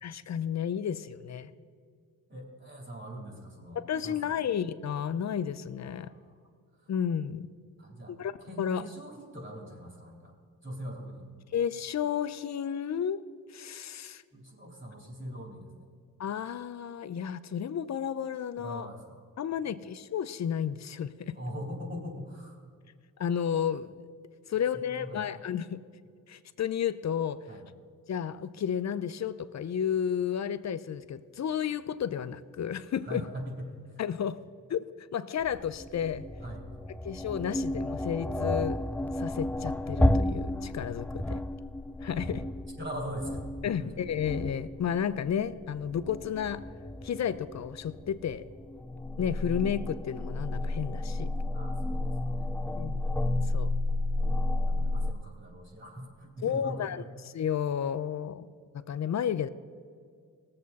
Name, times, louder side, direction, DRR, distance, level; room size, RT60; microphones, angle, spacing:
voice 1, 0.0-1.5 3.7-6.1 6.9-7.5 8.1-8.3 8.6-8.8 11.5-13.2 13.5-14.2 16.2-18.9 19.4-21.4 23.2-24.0 24.5-25.8 26.3-27.4 28.1-33.2 34.0-34.4 34.7-36.2 37.0-38.9 39.2-41.4 42.0-42.4 43.6-46.7 47.0-48.4 49.2-51.3 52.8-53.0 53.5-53.7 56.4-57.0 57.3-58.5 58.7-59.5, left 8 dB, 50° left, 14 dB, 0.7 m, -32 dB
voice 2, 2.3-4.2 6.0-6.3 6.8-6.9 7.8-8.1 8.4-10.3 10.6-11.3 14.3-15.9 18.6-19.2 19.6-19.7 21.3-22.6 24.5-24.6 24.8-25.4 27.5-27.6 33.0-34.0 36.4-36.7 42.8-43.9 51.5-52.5 54.7-57.1, equal, 35° right, 1 dB, 3.7 m, -42 dB
sound 1, 35.4-55.1, left 1 dB, 5° left, 0.4 m, -32 dB
18.0 x 7.6 x 4.1 m, 2.1 s
cardioid pair, 60°, 35 cm